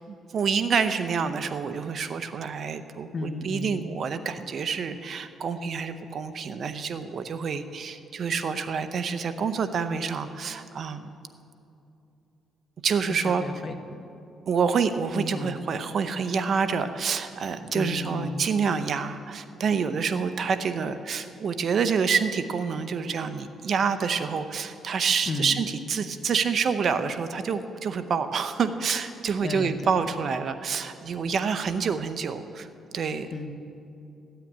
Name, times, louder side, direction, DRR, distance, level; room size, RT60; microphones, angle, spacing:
voice 1, 0.1-11.1 12.8-13.4 14.5-32.7 32.9-33.3, right 6 dB, 55° right, 10 dB, 0.8 m, -27 dB
voice 2, 3.1-3.9 13.1-14.1 15.1-15.5 17.7-18.5 25.3-25.7 29.4-29.9 33.3-33.5, left 2 dB, 45° left, 8 dB, 1.1 m, -33 dB
14.5 x 9.0 x 8.9 m, 2.7 s
cardioid pair, 90°, 0 cm